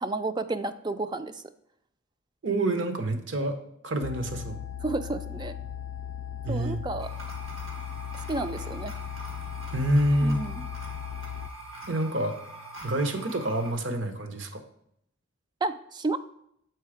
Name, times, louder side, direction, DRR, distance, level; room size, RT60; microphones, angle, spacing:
voice 1, 0.0-1.4 4.8-5.5 6.5-7.1 8.3-8.9 10.2-10.6 15.6-16.2, right 2 dB, 20° right, 11 dB, 0.3 m, -31 dB
voice 2, 2.4-3.6 3.8-4.6 6.4-6.8 9.7-10.4 11.9-12.4 12.8-14.6, right 1 dB, 60° right, 8 dB, 0.8 m, -27 dB
sound 1, 4.0-11.5, left 9 dB, 65° left, 0.4 m, -37 dB
sound 2, 7.0-13.7, right 2 dB, 80° right, 2.0 m, -43 dB
7.6 x 4.6 x 4.9 m, 0.73 s
head